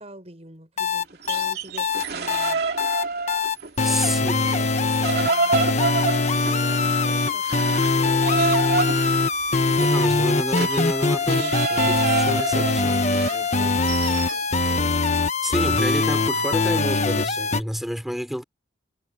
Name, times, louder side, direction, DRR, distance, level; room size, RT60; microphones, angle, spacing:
voice 1, 0.0-2.6 3.8-8.5 12.9-15.7, right 1 dB, 35° right, 5.2 m, -44 dB
sound 1, 0.8-17.6, left 3 dB, 40° left, 1.3 m, -22 dB
sound 2, 1.1-3.9 4.2-14.5, right 4 dB, 60° right, 2.9 m, -28 dB
voice 2, 3.8-4.4 9.8-13.0 15.4-18.4, equal, ahead, 3.6 m, -29 dB
head